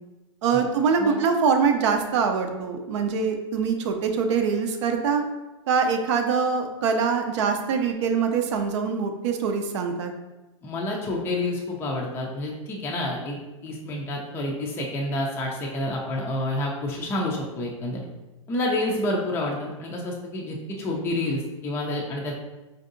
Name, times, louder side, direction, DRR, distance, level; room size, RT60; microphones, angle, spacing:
voice 1, 0.4-5.2 5.7-10.1, right 5 dB, 60° right, 5 dB, 0.5 m, -24 dB
voice 2, 10.6-13.4 13.6-18.1 18.5-22.3, left 1 dB, 15° left, -2 dB, 0.4 m, -29 dB
4.4 x 2.6 x 2.5 m, 1.1 s
hypercardioid pair, 135°, 17 cm